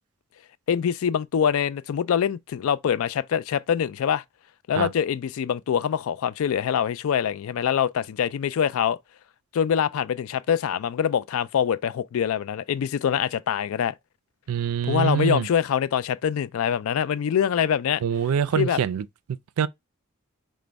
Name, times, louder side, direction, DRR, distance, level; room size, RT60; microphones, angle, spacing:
voice 1, 0.7-4.2 4.7-9.0 9.5-13.9 14.8-18.0 18.6-18.8, left 8 dB, 75° left, 0.3 m, -24 dB
voice 2, 14.5-15.5 18.0-19.1 19.6-19.7, right 8 dB, 85° right, 0.3 m, -24 dB
5.0 x 2.1 x 3.3 m
head